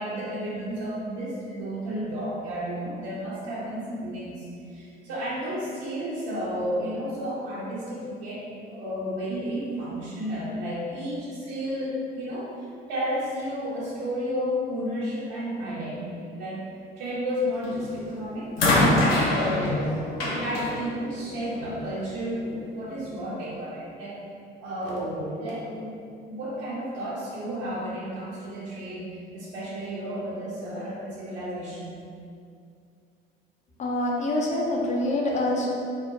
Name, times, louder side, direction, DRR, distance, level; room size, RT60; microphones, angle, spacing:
voice 1, 0.0-12.5 12.9-16.6 17.0-18.5 18.8-24.2 24.6-25.9 26.3-32.0, equal, 60° right, -6 dB, 0.5 m, -32 dB
sound 1, 17.6-18.0 18.6-21.8 22.9-23.0, left 1 dB, 80° left, 0.5 m, -25 dB
voice 2, 33.8-35.7, left 1 dB, 25° left, -3 dB, 0.5 m, -25 dB
2.3 x 2.1 x 2.7 m, 2.4 s
figure-of-eight pair, 55°, 29 cm